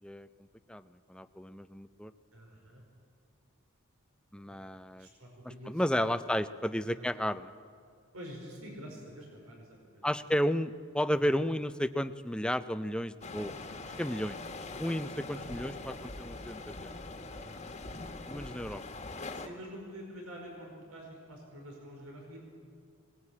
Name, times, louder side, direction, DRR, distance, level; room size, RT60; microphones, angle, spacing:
voice 1, 1.1-2.1 4.3-5.1 5.7-7.5 10.0-13.5 13.8-14.4 14.8-16.9 18.3-18.8, equal, 5° left, 12 dB, 0.5 m, -32 dB
voice 2, 2.3-2.8 4.9-6.0 6.7-7.1 8.1-10.2 11.2-11.3 15.3-15.8 17.2-17.6 19.3-22.4, equal, 85° right, 0 dB, 4.9 m, -47 dB
sound 1, 13.2-19.5, left 3 dB, 30° left, 1.6 m, -42 dB
21.0 x 19.5 x 8.6 m, 2.3 s
head